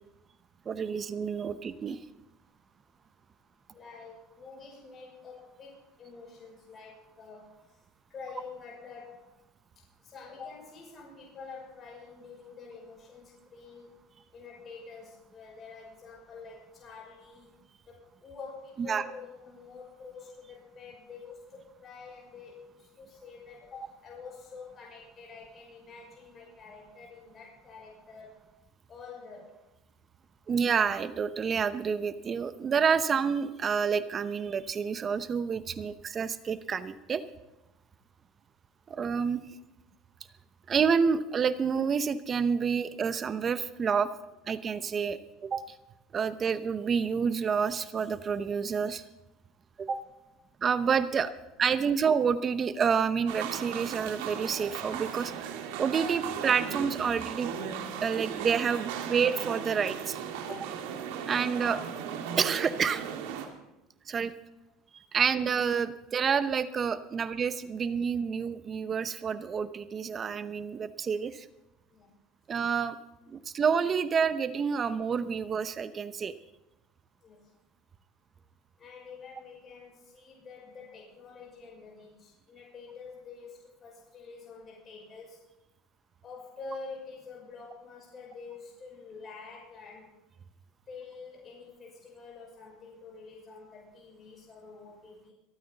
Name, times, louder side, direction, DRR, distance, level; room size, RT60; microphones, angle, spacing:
voice 1, 0.7-2.0 18.9-19.0 30.5-37.2 38.9-39.4 40.7-44.1 44.5-45.6 46.1-49.0 49.8-50.0 50.6-51.3 51.6-57.5 58.0-60.2 61.3-61.8 62.4-63.0 64.1-64.3 65.1-71.5 72.5-73.0 73.3-76.3, right 6 dB, 30° right, 12 dB, 0.8 m, -28 dB
voice 2, 3.7-7.4 8.1-9.2 10.0-14.0 14.3-17.5 17.9-28.4 28.9-29.5 49.9-50.0 60.5-60.6 71.9-72.1 77.2-77.4 78.8-85.5 86.2-90.1 90.9-95.3, left 4 dB, 35° left, -2 dB, 5.7 m, -47 dB
sound 1, 53.3-63.5, right 8 dB, 85° right, 2.0 m, -37 dB
26.0 x 9.3 x 4.1 m, 0.95 s
supercardioid pair, 125°, 0 cm